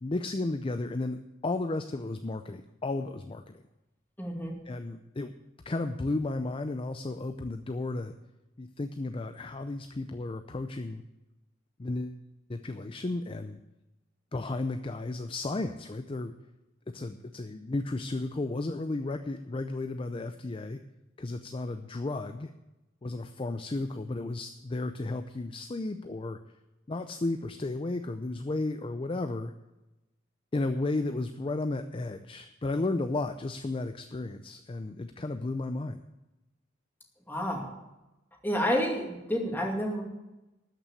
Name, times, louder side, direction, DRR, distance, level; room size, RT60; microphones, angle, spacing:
voice 1, 0.0-3.6 4.7-5.3 5.7-8.1 8.6-11.0 11.8-12.2 12.5-13.6 14.3-16.3 16.9-20.8 21.2-22.5 23.0-26.4 26.9-29.5 30.5-36.0, left 2 dB, 25° left, 8 dB, 0.5 m, -33 dB
voice 2, 4.2-4.6 37.3-37.7 38.4-40.0, equal, 10° left, 0 dB, 2.3 m, -29 dB
13.0 x 6.1 x 8.4 m, 1.0 s
head